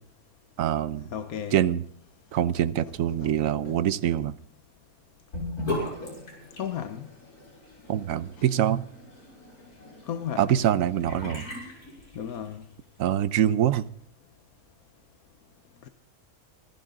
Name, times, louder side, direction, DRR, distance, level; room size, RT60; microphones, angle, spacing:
voice 1, 0.6-1.1 1.5-1.8 2.3-4.3 7.9-8.8 10.4-11.4 13.0-13.9, right 10 dB, 65° right, 1.1 m, -24 dB
voice 2, 1.1-1.6 3.2-3.3 3.6-3.8 6.6-7.1 10.1-10.6 12.1-12.6 15.8-15.9, left 9 dB, 75° left, 1.3 m, -34 dB
Sink (filling or washing) / Bathtub (filling or washing), 5.3-12.6, left 2 dB, 90° left, 7.0 m, -38 dB
26.0 x 12.0 x 3.8 m
omnidirectional pair, 1.6 m